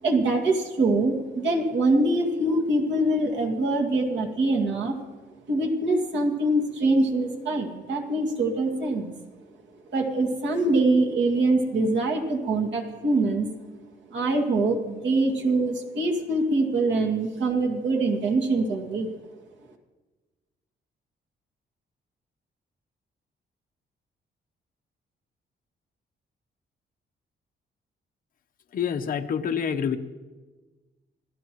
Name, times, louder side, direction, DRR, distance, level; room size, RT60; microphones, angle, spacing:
voice 1, 0.0-5.0 5.5-9.1 9.9-13.5 14.1-19.2, right 2 dB, 70° right, 1 dB, 2.3 m, -24 dB
voice 2, 28.7-30.0, left 7 dB, 45° left, 6 dB, 0.9 m, -27 dB
26.5 x 17.0 x 3.1 m, 1.3 s
wide cardioid pair, 175°, 19 cm